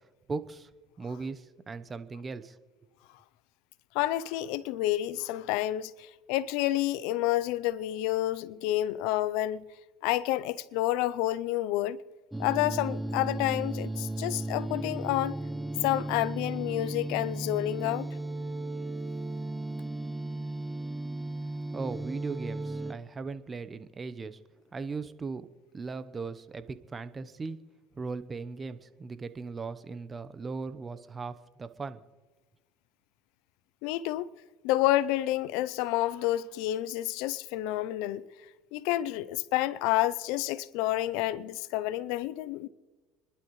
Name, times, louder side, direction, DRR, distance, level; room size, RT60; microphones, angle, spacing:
voice 1, 0.3-0.7 1.0-2.6 21.7-24.4 24.7-25.5 25.7-27.6 27.9-32.0, right 4 dB, 25° right, 1.0 m, -38 dB
voice 2, 3.9-9.6 10.0-12.0 12.4-15.3 15.8-18.1 33.8-34.3 34.6-38.2 38.7-42.7, left 15 dB, 75° left, 0.6 m, -29 dB
sound 1, 12.3-22.9, right 2 dB, 5° right, 1.1 m, -35 dB
30.0 x 11.5 x 3.2 m
supercardioid pair, 100°, 0 cm